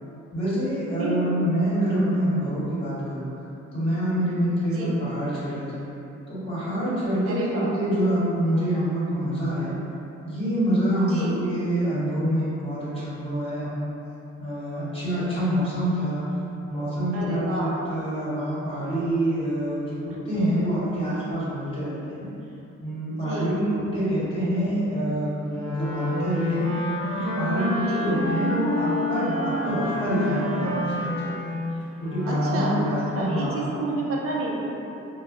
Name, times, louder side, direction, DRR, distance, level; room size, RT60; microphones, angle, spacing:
voice 1, 0.3-3.3 3.7-5.8 6.3-9.8 10.2-13.9 14.4-16.2 16.7-22.3 22.8-26.6 27.1-31.3 32.0-33.6, equal, 20° left, -10 dB, 1.5 m, -26 dB
voice 2, 0.9-1.4 4.7-5.0 7.2-7.7 11.1-11.4 17.1-17.8 23.1-23.6 27.8-28.1 32.2-32.8 33.1-34.7, right 2 dB, 50° right, -3 dB, 0.6 m, -30 dB
Wind instrument woodwind instrument, 25.5-32.8, left 1 dB, 50° left, 0.9 m, -28 dB
4.0 x 2.3 x 2.5 m, 2.9 s
cardioid pair, 90°, 30 cm